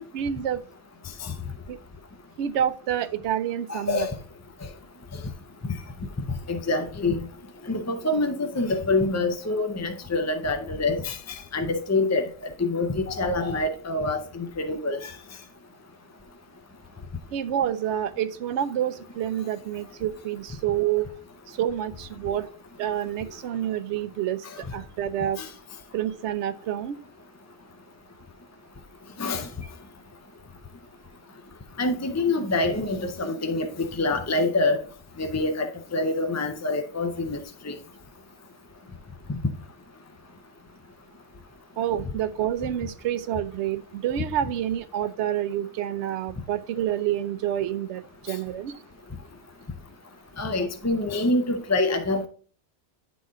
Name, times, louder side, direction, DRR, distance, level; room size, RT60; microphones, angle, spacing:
voice 1, 0.1-0.6 1.7-1.8 2.4-4.1 17.3-21.1 21.5-22.5 22.8-25.4 25.9-27.0 41.8-48.8, right 10 dB, 80° right, 0.9 m, -28 dB
voice 2, 3.7-4.1 6.5-7.2 7.7-12.3 12.6-15.1 25.4-25.5 29.2-29.5 31.8-34.8 35.2-37.4 37.6-37.8 39.3-39.4 50.4-52.3, left 2 dB, 25° left, 0.4 m, -26 dB
9.7 x 4.1 x 3.6 m
omnidirectional pair, 1.2 m